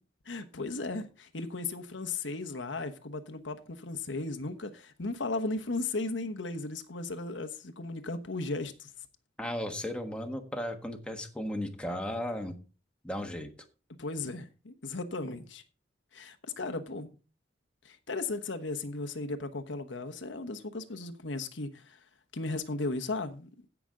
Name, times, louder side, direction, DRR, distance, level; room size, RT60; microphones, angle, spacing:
voice 1, 0.3-8.9 14.0-15.6 16.1-17.2 17.8-22.0 22.3-23.5, left 3 dB, 90° left, 1.2 m, -36 dB
voice 2, 9.4-12.6 13.0-13.5, left 1 dB, 5° left, 1.3 m, -35 dB
16.0 x 6.0 x 3.8 m
head